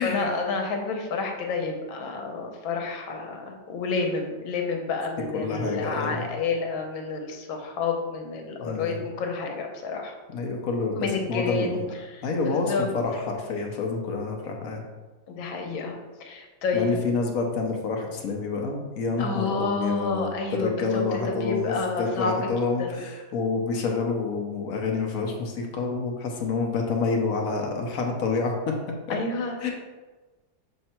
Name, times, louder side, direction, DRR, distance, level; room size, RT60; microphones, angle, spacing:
voice 1, 0.0-10.1 10.9-12.9 15.3-17.0 19.2-22.5 22.8-23.0 29.1-29.6, left 4 dB, 90° left, 3 dB, 1.6 m, -29 dB
voice 2, 5.3-6.2 8.6-9.0 10.3-11.8 12.2-14.8 16.7-20.3 20.6-28.7 29.1-29.2 29.6-29.7, left 4 dB, 60° left, 2 dB, 1.0 m, -28 dB
6.6 x 3.3 x 4.4 m, 1.3 s
omnidirectional pair, 2.1 m